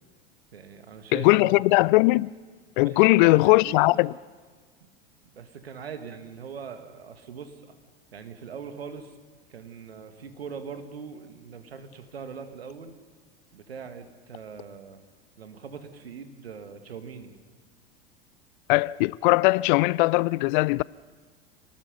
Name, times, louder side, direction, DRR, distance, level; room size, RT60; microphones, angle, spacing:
voice 1, 0.5-1.6 2.8-4.1 5.3-7.7 8.1-9.1 9.5-12.9 13.5-15.0 15.4-17.4, right 6 dB, 85° right, 2.2 m, -41 dB
voice 2, 1.1-2.3 2.8-4.1 18.7-20.8, left 22 dB, 55° left, 0.5 m, -20 dB
29.5 x 19.5 x 5.3 m
hypercardioid pair, 90°, 30 cm